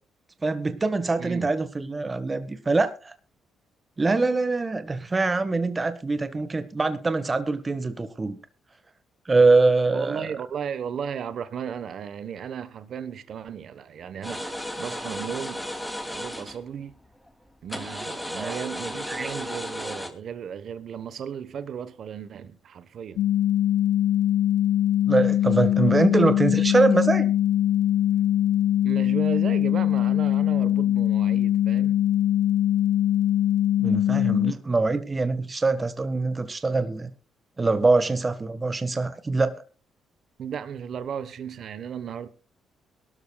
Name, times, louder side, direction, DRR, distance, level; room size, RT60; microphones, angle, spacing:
voice 1, 0.4-3.1 4.0-8.4 9.2-10.3 18.4-18.5 19.1-19.3 25.1-27.3 33.8-37.1 37.6-39.5, right 3 dB, 25° right, 1.4 m, -23 dB
voice 2, 1.2-1.5 9.9-15.7 16.0-16.9 17.6-23.3 28.8-31.9 40.4-42.3, right 8 dB, 60° right, 1.1 m, -35 dB
sound 1, 14.2-16.6 17.7-20.1, left 1 dB, 5° left, 2.7 m, -34 dB
sound 2, 23.2-34.5, left 12 dB, 65° left, 0.8 m, -22 dB
22.0 x 12.5 x 2.3 m
cardioid pair, 90°, 0 cm